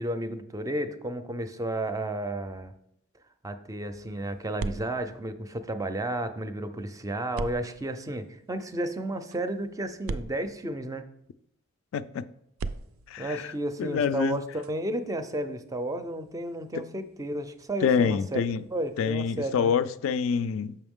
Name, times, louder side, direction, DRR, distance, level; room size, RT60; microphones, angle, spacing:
voice 1, 0.0-2.7 3.4-11.0 13.2-18.4 18.7-19.7, right 1 dB, 15° right, 0.4 m, -32 dB
sound 1, 3.9-6.2 7.3-11.3 12.5-19.2, right 3 dB, 80° right, 0.4 m, -43 dB
voice 2, 11.9-12.2 13.1-13.5 13.8-14.4 17.8-18.6 19.0-20.8, left 6 dB, 75° left, 0.3 m, -26 dB
6.9 x 5.5 x 3.6 m
head